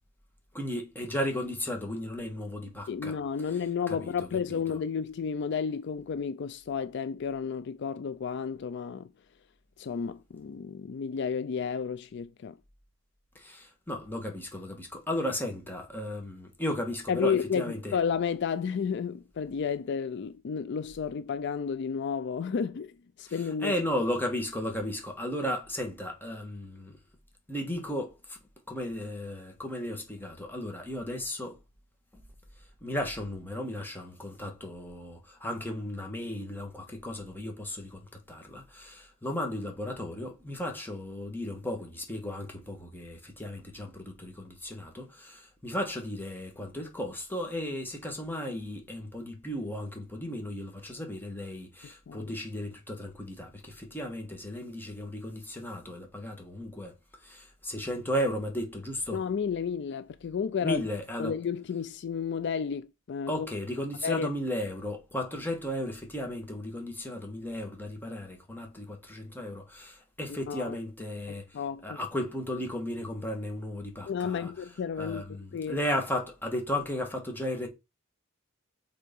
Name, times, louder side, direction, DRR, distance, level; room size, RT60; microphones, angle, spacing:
voice 1, 0.5-3.2 4.0-4.1 4.5-4.6 13.3-18.0 23.3-27.0 27.5-28.4 28.7-31.6 32.8-56.9 57.2-59.2 60.6-61.4 63.3-74.5 75.0-77.7, left 1 dB, 10° left, 1.6 m, -35 dB
voice 2, 2.9-9.1 9.8-12.6 17.1-23.7 52.1-52.3 59.1-60.8 61.2-63.5 64.0-64.3 70.3-70.8 71.5-72.0 74.1-75.8, left 6 dB, 55° left, 0.4 m, -32 dB
6.5 x 3.9 x 5.3 m
head